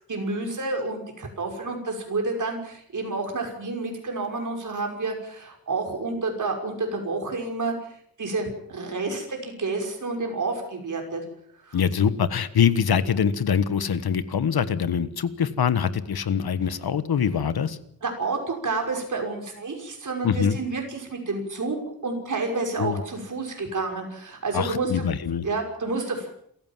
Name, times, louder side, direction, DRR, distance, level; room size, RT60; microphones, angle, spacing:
voice 1, 0.1-7.7 8.2-11.2 11.6-11.8 18.0-25.1 25.4-26.3, right 3 dB, 55° right, 2 dB, 5.8 m, -29 dB
voice 2, 11.7-17.8 20.2-20.6 22.8-23.0 24.5-25.4, left 7 dB, 90° left, 14 dB, 1.4 m, -24 dB
27.5 x 15.0 x 7.5 m, 0.69 s
wide cardioid pair, 145°, 36 cm